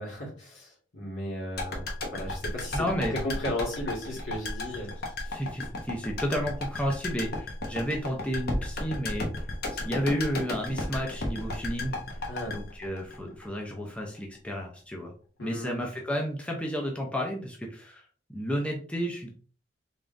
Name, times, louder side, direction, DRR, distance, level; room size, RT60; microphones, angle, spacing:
voice 1, 0.0-2.8 3.1-4.9 12.3-12.6 15.4-15.8, left 1 dB, 75° left, -2 dB, 1.9 m, -35 dB
sound 1, 1.6-13.7 14.0-14.1, left 2 dB, 55° left, 0.9 m, -34 dB
voice 2, 2.7-3.2 5.3-9.3 9.7-12.0 12.5-15.1 15.4-18.0 18.3-19.3, equal, 5° left, 0 dB, 0.6 m, -32 dB
3.5 x 3.5 x 2.6 m, 0.41 s
head